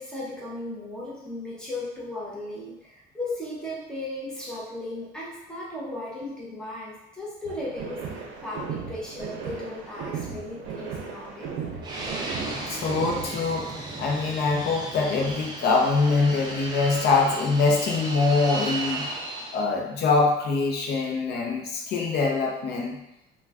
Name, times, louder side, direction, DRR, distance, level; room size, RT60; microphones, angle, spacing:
voice 1, 0.0-11.8, left 1 dB, 5° left, -7 dB, 0.7 m, -36 dB
sound 1, 7.4-13.5, right 6 dB, 65° right, 0.6 m, -36 dB
Fixed-wing aircraft airplane, 11.8-19.6, right 2 dB, 20° right, 0.4 m, -35 dB
voice 2, 12.7-19.1 19.5-23.0, left 4 dB, 55° left, 0 dB, 0.6 m, -24 dB
2.3 x 2.2 x 3.3 m, 0.86 s
cardioid pair, 155°, 21 cm